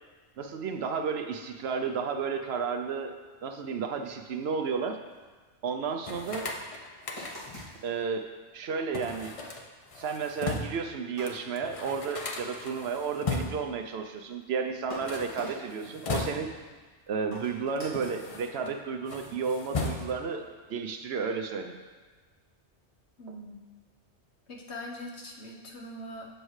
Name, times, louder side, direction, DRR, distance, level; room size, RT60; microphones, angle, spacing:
voice 1, 0.4-3.1 3.4-5.0 5.6-6.5 7.8-8.3 8.5-9.3 10.0-16.5 17.1-20.4 20.7-21.7, right 5 dB, 65° right, 5 dB, 0.8 m, -32 dB
sound 1, 5.1-5.2 5.7-5.9 7.2-8.1 9.2-9.3 9.8-10.1 11.2-12.1 12.4-12.5 12.7-13.5 14.3-14.5 14.9-15.7 16.5-16.6 17.3-18.4 19.0-19.8, equal, 25° left, 2.1 m, -45 dB
sound 2, 6.0-7.7 8.9-10.9 11.3-11.4 11.6-13.8 14.9-16.7 17.4-18.7 19.0-20.4, left 3 dB, 40° left, 0.5 m, -36 dB
voice 2, 23.2-23.6 24.5-26.3, left 1 dB, 65° left, -1 dB, 1.2 m, -42 dB
7.8 x 6.3 x 3.1 m, 1.4 s
omnidirectional pair, 1.2 m